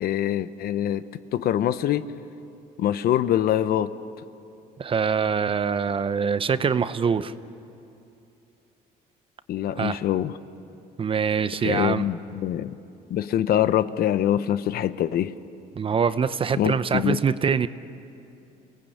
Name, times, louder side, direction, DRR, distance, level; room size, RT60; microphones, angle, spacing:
voice 1, 0.0-1.0 1.3-2.0 2.8-3.9 9.5-10.4 11.6-12.8 13.1-15.3 16.6-17.2, left 11 dB, 65° left, 14 dB, 0.9 m, -24 dB
voice 2, 4.8-7.3 9.8-10.0 11.0-12.1 15.8-17.7, right 6 dB, 30° right, 14 dB, 0.8 m, -24 dB
29.0 x 18.5 x 8.6 m, 2.7 s
cardioid pair, 110°, 17 cm